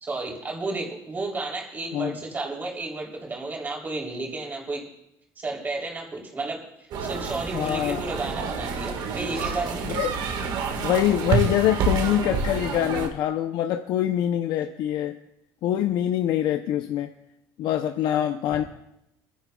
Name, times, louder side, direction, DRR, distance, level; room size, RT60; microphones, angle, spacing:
voice 1, 0.0-4.8 5.4-6.6 7.0-9.8, right 2 dB, 25° right, -1 dB, 3.2 m, -32 dB
sound 1, 6.9-13.1, right 5 dB, 60° right, 1.6 m, -28 dB
voice 2, 7.5-8.0 9.8-10.2 10.8-15.2 15.6-17.1 17.6-18.6, left 11 dB, 60° left, 7 dB, 0.6 m, -24 dB
29.0 x 10.5 x 2.3 m, 0.82 s
cardioid pair, 140°, 8 cm